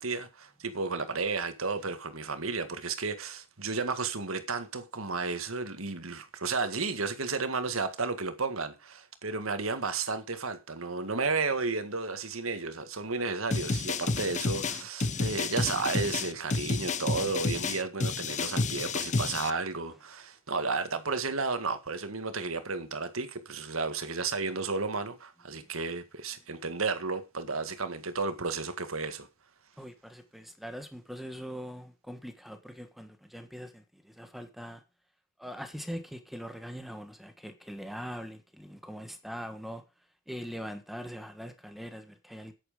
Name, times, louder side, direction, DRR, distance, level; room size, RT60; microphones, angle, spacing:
voice 1, 0.0-29.3, right 4 dB, 80° right, 1.8 m, -33 dB
sound 1, 13.5-19.5, left 3 dB, 35° left, 0.8 m, -30 dB
voice 2, 29.8-34.8 35.4-39.8 40.3-42.5, equal, ahead, 1.4 m, -42 dB
10.0 x 9.0 x 5.1 m
head